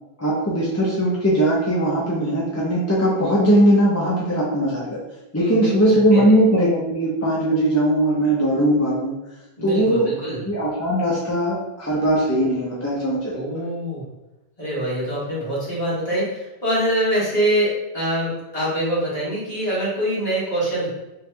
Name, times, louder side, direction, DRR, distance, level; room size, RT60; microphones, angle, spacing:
voice 1, 0.2-5.0 5.3-9.1 9.6-10.1 10.5-13.4, right 1 dB, 20° left, -7 dB, 0.6 m, -19 dB
voice 2, 5.3-6.4 9.6-10.4 13.3-14.0 14.6-20.9, right 1 dB, 40° left, -8 dB, 1.6 m, -24 dB
3.2 x 2.6 x 3.3 m, 1.0 s
omnidirectional pair, 1.1 m